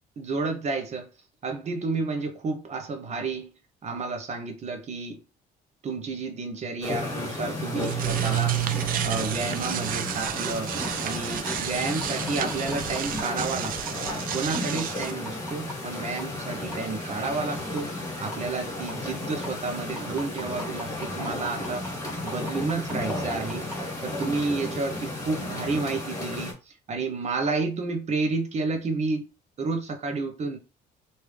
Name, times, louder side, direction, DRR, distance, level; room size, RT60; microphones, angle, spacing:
voice 1, 0.2-1.1 1.4-3.5 3.8-5.2 5.8-8.6 9.0-10.7 11.0-14.0 14.3-21.9 22.2-29.3 29.6-30.6, right 3 dB, 40° right, 0.9 m, -31 dB
sound 1, 6.8-26.5, left 1 dB, 20° left, 1.7 m, -33 dB
sound 2, 7.6-15.1, right 11 dB, 55° right, 0.4 m, -31 dB
sound 3, 10.3-10.4 10.8-10.9 11.4-11.5 12.0-15.7 16.2-16.3 16.7-16.8 17.2-17.3 17.8-17.9 18.3-18.4 18.9-19.0 19.4-19.5 20.0-23.7 24.2-24.3, equal, 10° right, 1.3 m, -38 dB
3.3 x 2.8 x 3.2 m
cardioid pair, 110°, 17 cm